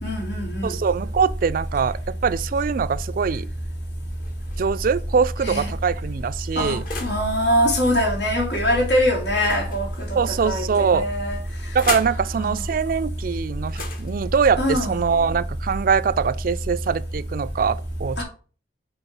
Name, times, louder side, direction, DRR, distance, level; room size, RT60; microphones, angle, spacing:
voice 1, 0.0-0.8 5.4-5.7 6.5-11.4 12.3-12.6 14.6-14.9 18.2-18.3, equal, 85° left, 3.0 m, -23 dB
voice 2, 0.6-3.5 4.6-6.8 10.2-11.1 11.7-18.2, right 6 dB, 50° right, 0.3 m, -23 dB
sound 1, 4.1-4.9 5.6-7.3 9.3-10.4 11.2-12.2 13.6-15.6, left 4 dB, 55° left, 1.5 m, -36 dB
7.1 x 3.6 x 5.4 m
head